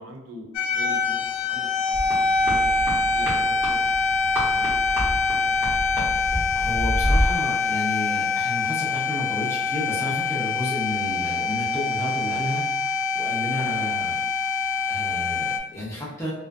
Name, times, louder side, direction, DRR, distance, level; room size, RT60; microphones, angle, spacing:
voice 1, 0.0-2.0 2.4-3.8 4.5-5.8 13.5-13.7, equal, 80° right, 1 dB, 0.5 m, -43 dB
sound 1, 0.5-15.6, left 4 dB, 65° left, 0.3 m, -24 dB
sound 2, 1.9-7.4, equal, 10° right, 0.8 m, -28 dB
voice 2, 6.5-14.2 14.9-16.3, left 1 dB, 10° left, -6 dB, 0.6 m, -32 dB
2.4 x 2.2 x 2.4 m, 1.0 s
head